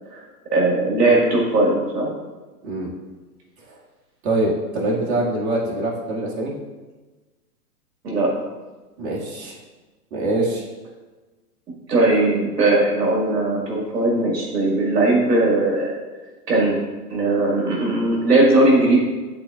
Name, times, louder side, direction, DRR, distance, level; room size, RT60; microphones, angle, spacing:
voice 1, 0.5-2.1 8.0-8.3 11.9-16.0 16.5-16.8 17.1-19.0, right 2 dB, 85° right, -3 dB, 1.9 m, -18 dB
voice 2, 4.2-6.5 9.0-9.6 10.1-10.6, right 2 dB, 60° right, -4 dB, 2.1 m, -24 dB
11.5 x 4.1 x 2.4 m, 1.2 s
hypercardioid pair, 120°, 47 cm